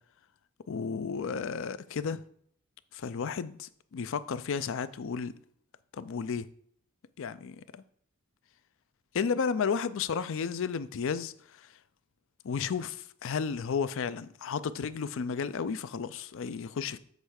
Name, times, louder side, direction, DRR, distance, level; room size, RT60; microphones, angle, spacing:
voice 1, 0.7-2.2 2.9-5.4 5.9-6.5 7.2-7.8 9.1-11.7 12.4-17.0, left 6 dB, 65° left, 0.4 m, -33 dB
8.0 x 3.2 x 6.3 m
head